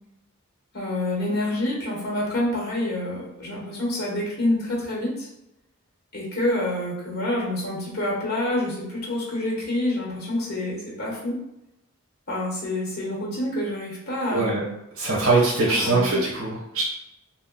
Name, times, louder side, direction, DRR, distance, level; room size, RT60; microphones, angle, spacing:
voice 1, 0.7-5.3 6.1-11.4 12.3-14.6 15.7-16.2, left 1 dB, 50° left, -4 dB, 1.0 m, -27 dB
voice 2, 15.0-16.8, right 3 dB, 75° right, -5 dB, 0.9 m, -22 dB
2.8 x 2.1 x 3.6 m, 0.86 s
head